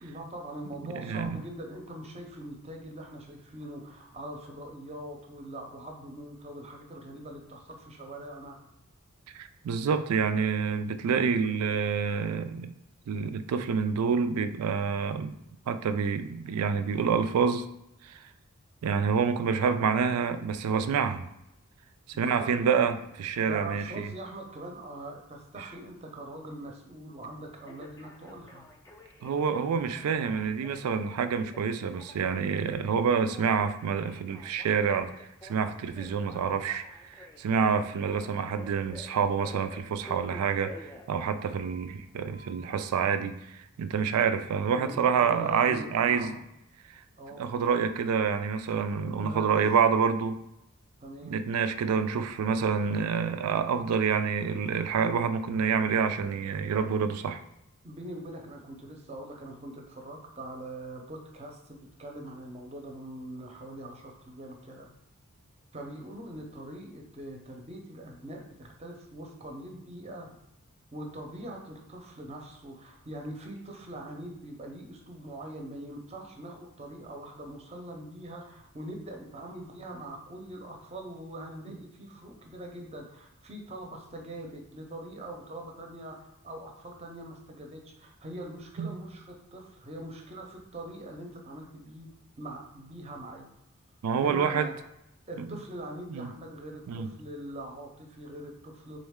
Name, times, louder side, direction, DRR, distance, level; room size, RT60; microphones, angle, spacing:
voice 1, 0.0-8.6 22.1-22.7 23.4-28.6 44.7-46.3 47.2-47.4 49.2-49.6 51.0-51.4 57.8-64.9 65.7-70.3 70.9-92.1 92.4-93.5 94.2-94.7 95.3-99.0, right 1 dB, 30° right, 1 dB, 0.6 m, -42 dB
voice 2, 0.8-1.4 9.3-12.7 13.1-15.3 15.7-17.6 18.0-18.2 18.8-21.3 22.2-24.1 25.6-25.7 29.2-35.1 35.4-46.4 47.4-50.4 51.2-57.4 88.8-89.0 94.0-94.7 95.4-95.6 96.1-96.3 96.9-97.1, right 6 dB, 85° right, 10 dB, 0.3 m, -27 dB
Telephone, 24.3-24.9 27.6-41.8 42.3-42.8, left 1 dB, 15° left, 0.3 m, -51 dB
3.8 x 3.1 x 3.5 m, 0.84 s
head